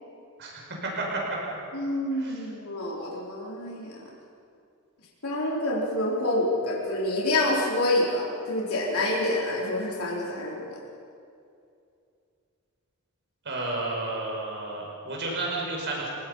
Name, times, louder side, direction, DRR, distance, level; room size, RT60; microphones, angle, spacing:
voice 1, 0.4-1.2 2.2-2.4 13.4-16.1, right 2 dB, 55° right, -2 dB, 5.9 m, -32 dB
voice 2, 1.7-4.0 5.2-10.8, left 1 dB, 75° left, -4 dB, 4.3 m, -27 dB
29.5 x 18.0 x 5.6 m, 2.5 s
head